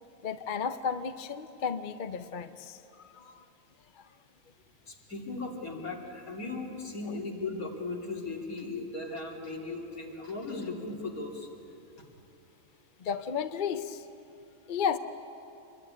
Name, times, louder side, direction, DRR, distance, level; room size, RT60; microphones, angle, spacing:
voice 1, 0.2-3.5 4.0-4.1 13.0-14.1 14.7-15.0, left 7 dB, 45° left, 9 dB, 0.8 m, -33 dB
voice 2, 4.9-11.5, left 3 dB, 75° left, -1 dB, 3.4 m, -37 dB
26.0 x 21.5 x 9.8 m, 3.0 s
omnidirectional pair, 1.5 m